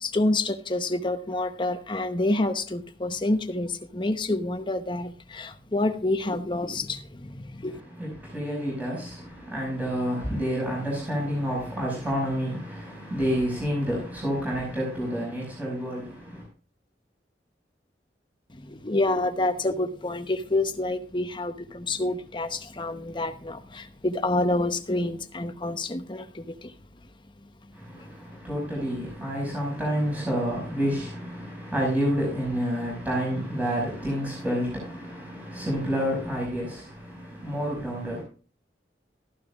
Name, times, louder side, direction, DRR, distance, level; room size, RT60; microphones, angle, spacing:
voice 1, 0.0-7.8 18.5-26.7, left 2 dB, 30° left, 0.9 m, -28 dB
voice 2, 7.7-16.4 27.7-38.2, equal, 10° right, 5.6 m, -29 dB
14.0 x 12.0 x 2.4 m
head